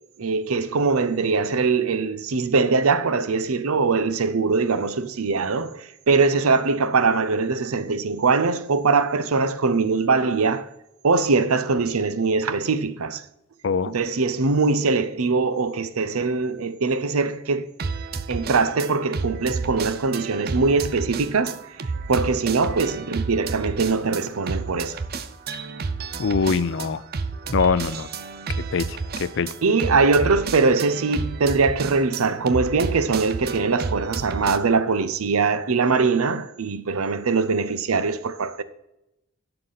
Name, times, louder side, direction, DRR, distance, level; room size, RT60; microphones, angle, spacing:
voice 1, 0.2-10.7 11.0-13.2 13.8-17.7 18.3-21.6 22.1-25.0 29.6-38.6, right 4 dB, 90° right, 0.7 m, -22 dB
sound 1, 17.8-34.6, right 4 dB, 45° right, 0.5 m, -31 dB
voice 2, 26.2-27.0 27.5-28.1 28.7-28.9 29.2-29.5, left 5 dB, 60° left, 0.5 m, -22 dB
11.5 x 6.7 x 4.0 m
head